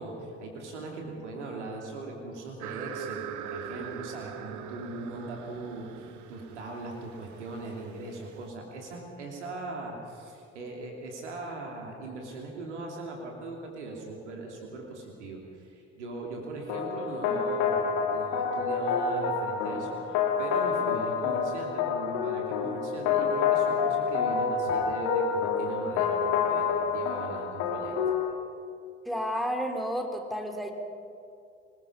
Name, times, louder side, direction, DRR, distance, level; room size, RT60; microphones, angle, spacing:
voice 1, 0.0-28.0, right 2 dB, 80° right, 0 dB, 3.0 m, -40 dB
sound 1, 2.6-8.4, right 9 dB, 55° right, 1.2 m, -42 dB
sound 2, 16.7-28.3, left 6 dB, 65° left, 2.1 m, -28 dB
voice 2, 29.0-30.7, equal, ahead, 4 dB, 3.2 m, -31 dB
24.0 x 20.5 x 5.6 m, 2.6 s
figure-of-eight pair, 50°, 35 cm